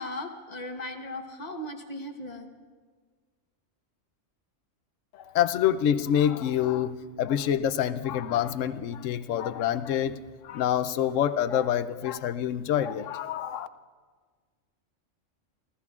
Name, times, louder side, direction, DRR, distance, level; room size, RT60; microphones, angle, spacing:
voice 1, 0.0-2.5, left 1 dB, 35° left, 4 dB, 1.2 m, -37 dB
voice 2, 5.1-10.2 10.4-13.7, left 10 dB, 80° left, 13 dB, 0.9 m, -26 dB
29.5 x 14.5 x 2.4 m, 1.5 s
omnidirectional pair, 1.3 m